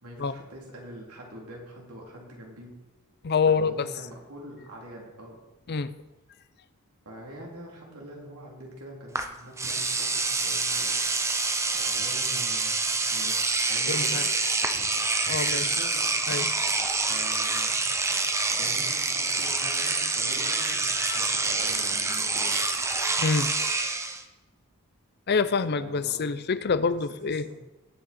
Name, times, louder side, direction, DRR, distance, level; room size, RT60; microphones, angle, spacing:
voice 1, 0.0-2.7 3.5-5.4 7.0-11.0 11.7-13.4 13.7-14.2 15.5-16.1 17.1-17.8 18.6-22.5 25.7-26.5 26.8-27.5, right 1 dB, 85° right, -2 dB, 3.3 m, -44 dB
voice 2, 3.2-3.9 5.7-5.9 13.9-14.2 14.7-14.9 15.3-15.8 16.3-16.5 20.9-21.2 23.2-23.5 25.3-27.4, left 5 dB, 45° left, 14 dB, 0.5 m, -26 dB
Engine / Domestic sounds home sounds, 9.2-9.3 9.6-24.2, right 3 dB, 15° right, 0.7 m, -27 dB
19.0 x 6.5 x 4.3 m, 1.1 s
head